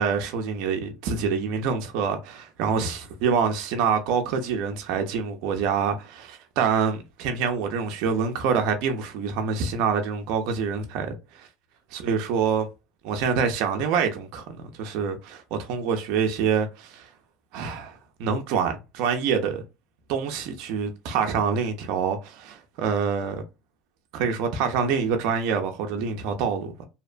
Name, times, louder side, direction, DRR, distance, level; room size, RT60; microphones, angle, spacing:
voice 1, 0.0-11.5 11.9-12.7 13.0-17.1 17.5-19.6 20.1-23.4 24.1-26.8, right 6 dB, 70° right, 0.5 m, -26 dB
2.8 x 2.1 x 2.4 m
supercardioid pair, 100°, 0 cm